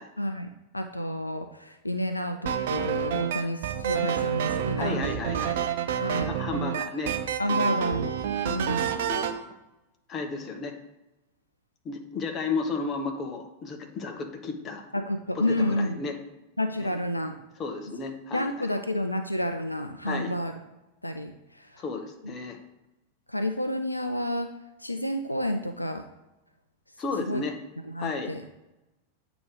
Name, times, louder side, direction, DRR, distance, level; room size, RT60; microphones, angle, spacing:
voice 1, 0.2-5.0 6.0-6.3 7.4-9.0 14.9-16.0 16.6-17.4 18.3-20.5 21.0-21.8 23.3-24.5 24.8-26.1 27.2-27.4 27.8-28.4, left 1 dB, 85° left, 7 dB, 0.4 m, -30 dB
sound 1, 2.5-9.4, right 8 dB, 55° right, 0.6 m, -28 dB
voice 2, 4.8-5.6 6.2-7.2 7.5-7.6 8.7-9.3 10.1-10.8 11.8-14.8 15.3-16.2 16.8-16.9 17.6-18.7 20.0-20.3 21.8-22.6 27.0-27.5 28.0-28.3, left 4 dB, 30° left, 4 dB, 1.0 m, -33 dB
8.6 x 3.0 x 5.0 m, 0.97 s
figure-of-eight pair, 90°, 0 cm